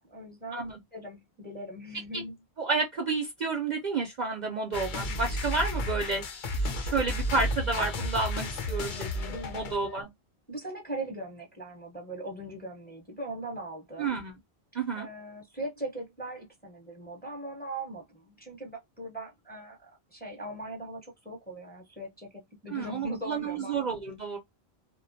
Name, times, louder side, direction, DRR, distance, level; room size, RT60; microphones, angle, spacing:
voice 1, 0.1-0.6 0.9-2.3 9.3-9.8 10.5-14.2 14.9-23.9, right 1 dB, 10° left, 0.8 m, -40 dB
voice 2, 2.6-6.2 6.5-10.1 14.0-14.3 14.7-15.1 22.7-24.4, right 4 dB, 50° right, 0.6 m, -31 dB
sound 1, 4.7-10.0, left 1 dB, 55° left, 0.7 m, -32 dB
2.3 x 2.2 x 2.5 m
omnidirectional pair, 1.1 m